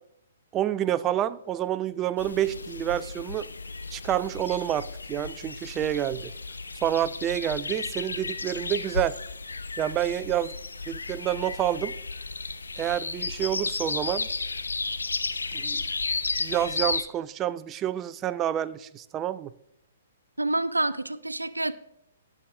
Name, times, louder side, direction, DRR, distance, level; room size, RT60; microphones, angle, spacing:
voice 1, 0.5-3.5 3.9-6.3 6.8-9.2 9.8-10.5 10.9-11.9 12.8-14.3 15.5-15.8 16.4-19.5, right 11 dB, 20° right, 15 dB, 0.4 m, -28 dB
sound 1, 2.2-17.0, left 3 dB, 75° left, 0.6 m, -33 dB
voice 2, 20.4-21.7, right 2 dB, 85° right, 14 dB, 0.4 m, -27 dB
18.0 x 6.2 x 2.6 m, 0.77 s
figure-of-eight pair, 120°, 0 cm